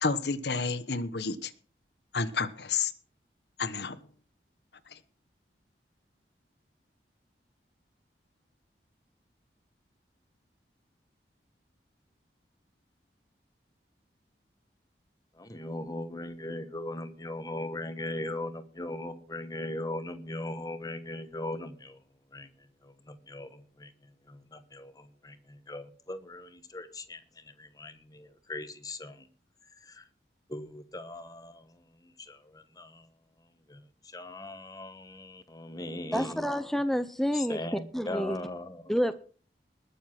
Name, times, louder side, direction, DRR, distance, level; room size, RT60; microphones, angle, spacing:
voice 1, 0.0-1.5 2.1-2.9 3.6-4.0, left 4 dB, 70° left, 1.1 m, -30 dB
voice 2, 15.4-22.0 22.3-22.5 22.8-23.9 24.3-29.3 29.8-30.0 30.5-33.1 33.7-36.5 37.3-38.9, left 1 dB, 20° left, 1.3 m, -39 dB
voice 3, 36.1-37.6 37.9-38.4 38.9-39.1, equal, ahead, 0.6 m, -28 dB
20.0 x 7.1 x 6.0 m
head